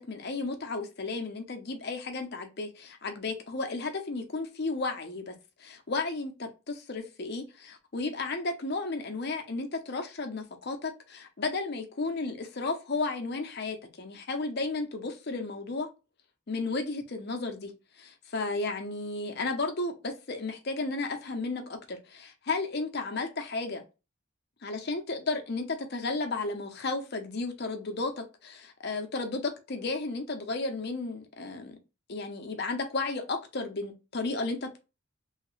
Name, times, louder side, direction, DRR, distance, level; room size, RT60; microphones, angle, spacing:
voice 1, 0.1-5.3 5.6-15.9 16.5-23.8 24.6-31.8 32.1-34.8, left 3 dB, 50° left, 0.7 m, -33 dB
3.2 x 2.8 x 3.1 m
head